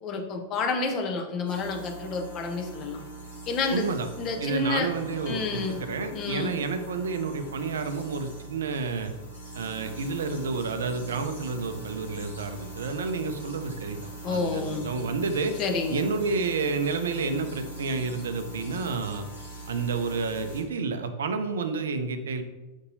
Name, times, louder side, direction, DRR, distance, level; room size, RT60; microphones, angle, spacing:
voice 1, 0.0-3.0 3.5-3.9 4.2-4.9 5.3-5.8 6.1-6.6 14.2-14.9 15.6-16.1, left 4 dB, 35° left, 3 dB, 0.6 m, -29 dB
Computer Chirps, 1.5-20.6, right 2 dB, 80° left, 1.1 m, -42 dB
voice 2, 3.7-4.1 4.4-9.1 9.5-15.5 15.9-19.3 19.7-22.4, right 4 dB, 65° right, 8 dB, 0.3 m, -30 dB
5.3 x 2.7 x 2.6 m, 1.1 s
figure-of-eight pair, 90°, 0 cm